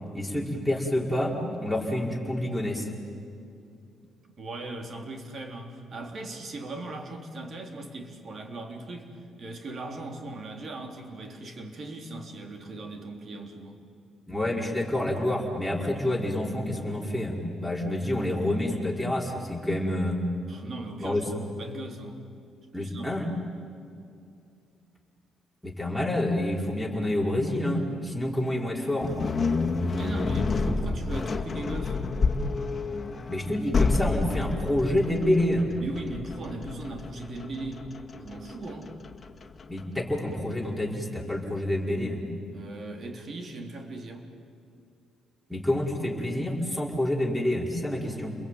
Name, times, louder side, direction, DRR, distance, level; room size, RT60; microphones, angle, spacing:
voice 1, 0.1-2.9 14.3-20.2 21.0-21.2 22.7-23.3 25.6-29.1 33.3-35.7 39.7-42.2 45.5-48.4, left 1 dB, 5° right, -1 dB, 5.1 m, -28 dB
voice 2, 4.4-9.1 9.4-13.8 20.5-22.2 22.7-23.1 29.9-32.0 35.8-38.9 42.5-44.3, right 2 dB, 50° right, 4 dB, 3.5 m, -39 dB
sound 1, 29.0-40.1, left 4 dB, 35° left, 1.9 m, -29 dB
29.0 x 22.0 x 9.3 m, 2.4 s
cardioid pair, 90°, 0 cm